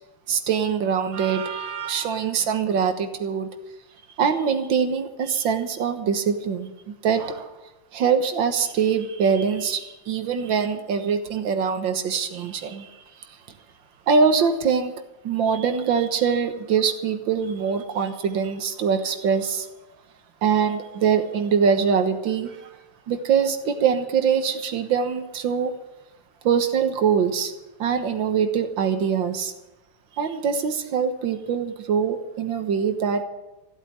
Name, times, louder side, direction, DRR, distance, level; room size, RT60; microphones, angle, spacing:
voice 1, 0.3-3.5 4.2-7.5 7.9-13.4 14.1-14.9 15.2-19.7 20.4-22.8 23.1-25.7 26.4-27.5 27.8-29.5 30.2-33.2, right 6 dB, 65° right, 8 dB, 1.9 m, -23 dB
15.5 x 8.1 x 9.8 m, 1.0 s
omnidirectional pair, 2.3 m